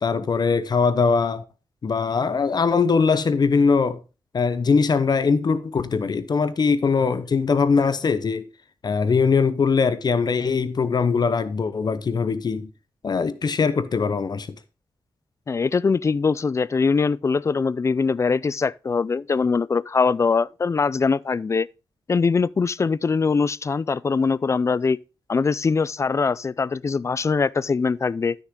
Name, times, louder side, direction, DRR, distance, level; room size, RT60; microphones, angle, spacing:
voice 1, 0.0-1.4 1.8-4.0 4.3-8.5 8.8-12.7 13.0-14.5, left 5 dB, 50° left, 0.8 m, -21 dB
voice 2, 15.5-21.7 22.1-25.0 25.3-28.4, left 4 dB, 35° left, 0.4 m, -22 dB
13.0 x 6.5 x 3.7 m
wide cardioid pair, 100°, 9 cm